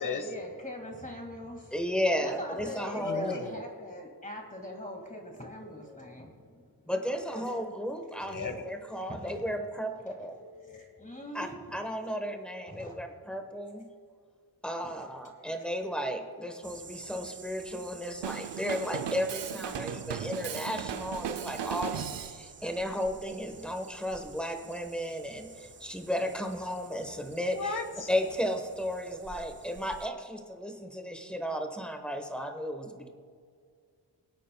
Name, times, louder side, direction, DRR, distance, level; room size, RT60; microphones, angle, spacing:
voice 1, 0.0-1.8 2.2-6.9 7.2-7.7 8.3-9.3 10.1-12.4 12.7-13.0 14.8-14.9, left 1 dB, 20° left, 2 dB, 2.0 m, -43 dB
voice 2, 1.7-3.4 6.9-9.9 10.2-10.3 11.3-13.9 14.6-27.8 28.1-33.1, equal, ahead, 5 dB, 1.1 m, -34 dB
voice 3, 3.0-3.6 8.2-8.7 27.5-28.1, left 4 dB, 50° left, 8 dB, 1.1 m, -35 dB
sound 1, 16.6-30.1, right 5 dB, 30° right, 0.5 m, -51 dB
Drum kit, 18.2-22.4, right 8 dB, 85° right, 0.6 m, -36 dB
25.5 x 8.5 x 2.3 m, 2.2 s
wide cardioid pair, 120°, 41 cm